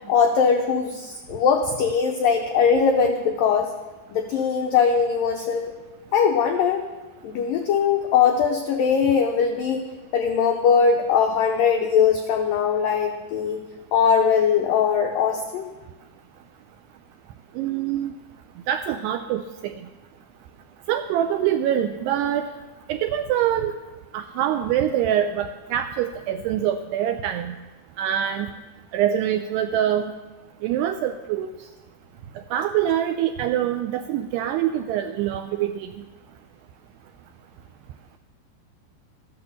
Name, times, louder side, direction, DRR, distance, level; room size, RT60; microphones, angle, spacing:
voice 1, 0.1-3.7 4.1-5.7 6.1-6.8 7.2-9.8 10.1-13.6 13.9-15.7, left 6 dB, 85° left, 3 dB, 1.9 m, -21 dB
voice 2, 17.6-18.1 18.7-19.7 20.9-22.5 22.9-23.8 24.1-27.6 28.0-28.5 28.9-30.1 30.6-31.5 32.5-36.0, right 10 dB, 85° right, 7 dB, 2.4 m, -24 dB
14.0 x 10.5 x 7.1 m, 1.2 s
omnidirectional pair, 5.3 m